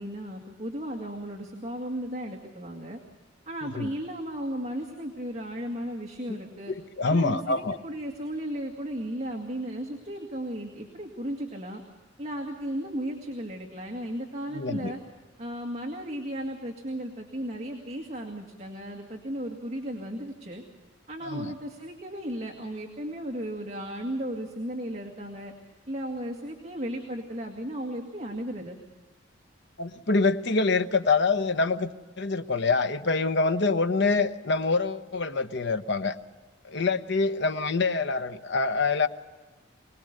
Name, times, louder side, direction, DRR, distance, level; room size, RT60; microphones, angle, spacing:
voice 1, 0.0-3.0 3.5-6.7 7.1-11.8 12.2-15.0 15.4-20.6 21.1-25.5 25.9-28.8, equal, 35° right, 1 dB, 2.1 m, -35 dB
voice 2, 6.7-7.8 14.5-14.9 21.2-21.5 29.8-31.9 32.2-36.2 36.6-39.1, left 3 dB, 60° left, 9 dB, 1.0 m, -25 dB
25.0 x 19.5 x 6.7 m, 1.2 s
head